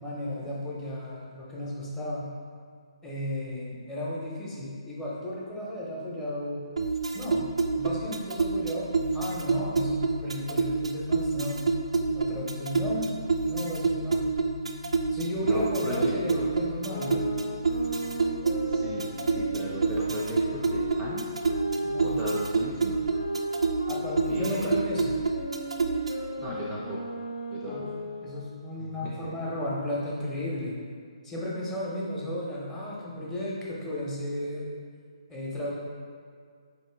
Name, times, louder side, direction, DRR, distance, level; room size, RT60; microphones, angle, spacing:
voice 1, 0.0-2.3 3.0-6.6 7.1-11.7 12.1-13.1 13.5-14.3 15.1-17.3 21.8-22.3 23.9-25.1 27.7-27.8 28.2-30.7 31.2-34.6 35.3-35.8, left 1 dB, 10° left, -6 dB, 0.7 m, -34 dB
sound 1, 6.8-26.3, right 4 dB, 75° right, 0.3 m, -28 dB
sound 2, 8.9-23.4, left 4 dB, 45° left, 0.4 m, -43 dB
voice 2, 15.4-16.5 18.7-21.3 22.0-23.0 24.3-24.7 26.4-27.1 27.5-27.9 28.8-29.4, right 1 dB, 20° right, -4 dB, 0.5 m, -36 dB
sound 3, 16.8-22.4 23.1-28.5, equal, 75° left, 0.9 m, -37 dB
4.2 x 2.8 x 3.3 m, 2.1 s
figure-of-eight pair, 140°, 3 cm